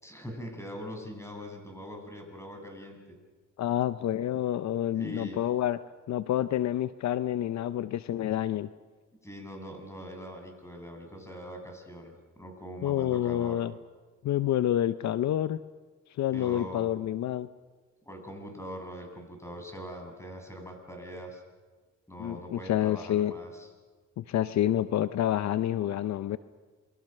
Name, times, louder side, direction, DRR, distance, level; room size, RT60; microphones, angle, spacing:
voice 1, 0.0-3.2 5.0-5.4 9.2-13.6 16.3-16.9 18.0-21.4 22.1-23.7, equal, 10° left, 3 dB, 7.2 m, -42 dB
voice 2, 3.6-5.8 6.1-8.7 12.8-13.7 14.2-15.6 16.1-17.5 22.2-23.3 24.2-26.4, left 12 dB, 65° left, 13 dB, 0.7 m, -28 dB
28.0 x 22.5 x 6.7 m, 1.4 s
cardioid pair, 90°, 30 cm